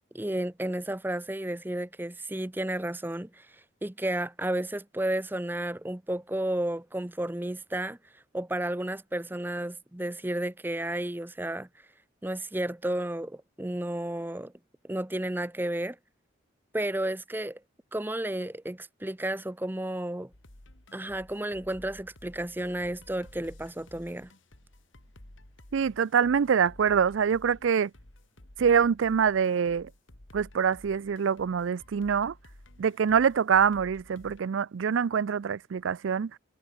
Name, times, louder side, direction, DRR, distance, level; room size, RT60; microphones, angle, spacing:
voice 1, 0.1-3.5 3.8-8.0 8.3-11.7 12.2-14.5 14.8-16.0 16.7-17.6 17.9-20.3 20.9-24.3, right 1 dB, 10° right, 0.6 m, -32 dB
sound 1, 20.3-34.4, left 1 dB, 70° left, 2.9 m, -53 dB
voice 2, 25.7-27.9 28.6-29.9 30.3-32.3 32.8-36.3, right 7 dB, 70° right, 0.4 m, -25 dB
head